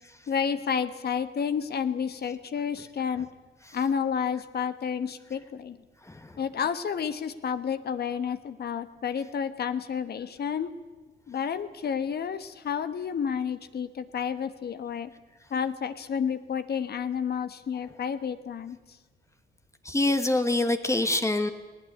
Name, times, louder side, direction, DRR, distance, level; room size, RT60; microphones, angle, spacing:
voice 1, 0.3-3.3 3.7-5.8 6.4-10.7 11.3-15.1 15.5-18.8, left 7 dB, 55° left, 11 dB, 1.3 m, -30 dB
voice 2, 6.0-6.4 19.8-21.5, left 2 dB, 15° left, 8 dB, 1.5 m, -26 dB
18.5 x 18.5 x 9.9 m, 1.3 s
cardioid pair, 90°, 20 cm